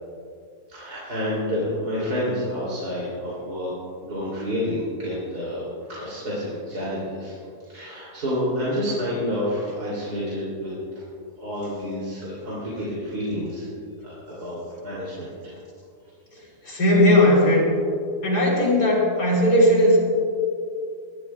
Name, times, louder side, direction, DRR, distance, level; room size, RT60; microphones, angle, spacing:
voice 1, 0.7-3.7 4.0-7.3 7.6-10.7 11.4-13.7 14.0-15.6 16.7-16.8, equal, 80° right, -9 dB, 3.8 m, -29 dB
voice 2, 16.6-17.7 18.2-20.0, left 1 dB, 80° left, -5 dB, 4.4 m, -17 dB
22.0 x 12.5 x 2.4 m, 2.4 s
omnidirectional pair, 1.7 m